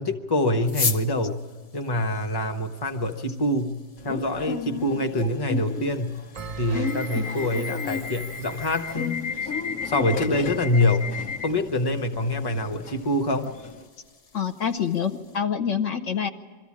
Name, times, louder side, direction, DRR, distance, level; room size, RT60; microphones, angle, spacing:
voice 1, 0.0-1.4 1.7-6.2 6.6-9.2 9.4-9.5 9.8-11.1 11.4-13.5, left 1 dB, 20° left, 5 dB, 1.0 m, -25 dB
sound 1, 0.6-15.4, left 4 dB, 35° left, 0.6 m, -40 dB
Subway metro underground / Alarm, 4.0-13.8, left 6 dB, 85° left, 1.6 m, -33 dB
Bell, 6.3-9.1, right 5 dB, 45° right, 0.5 m, -41 dB
voice 2, 14.3-16.3, left 7 dB, 65° left, 7 dB, 1.2 m, -26 dB
23.0 x 14.0 x 8.6 m, 1.5 s
omnidirectional pair, 1.4 m